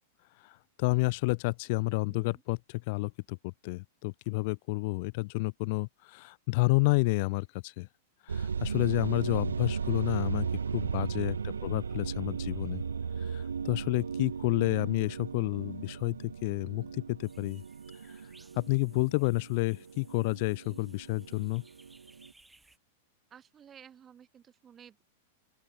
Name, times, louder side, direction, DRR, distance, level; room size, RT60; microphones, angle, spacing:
voice 1, 0.4-7.9 8.3-10.5 10.7-12.8 13.2-17.6 18.6-21.6, left 26 dB, 50° left, 0.4 m, -30 dB
voice 2, 2.0-2.4 23.3-25.0, right 8 dB, 25° right, 3.6 m, -55 dB
sound 1, 8.3-22.3, right 6 dB, 75° right, 0.4 m, -36 dB
sound 2, 17.2-22.8, right 2 dB, 5° right, 4.5 m, -62 dB
open air
figure-of-eight pair, 95°, 0 cm